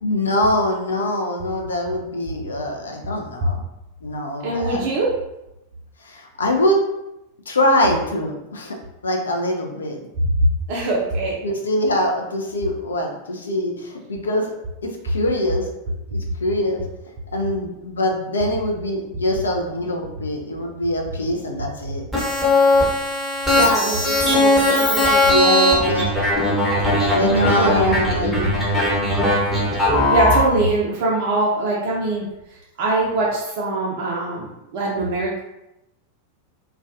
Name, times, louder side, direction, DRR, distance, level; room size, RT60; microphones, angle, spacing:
voice 1, 0.0-3.6 4.0-4.9 6.0-6.8 7.5-8.8 9.0-10.0 11.4-14.5 14.8-15.7 16.1-16.8 17.3-22.0 25.3-26.1 27.1-28.6, left 1 dB, 70° left, 1 dB, 0.4 m, -23 dB
voice 2, 4.4-5.1 10.7-11.4 23.5-25.9 27.5-28.5 30.1-35.4, right 2 dB, 50° right, -4 dB, 0.4 m, -23 dB
sound 1, 22.1-30.4, left 1 dB, 5° left, 0.8 m, -19 dB
2.2 x 2.2 x 2.4 m, 0.89 s
figure-of-eight pair, 90°, 0 cm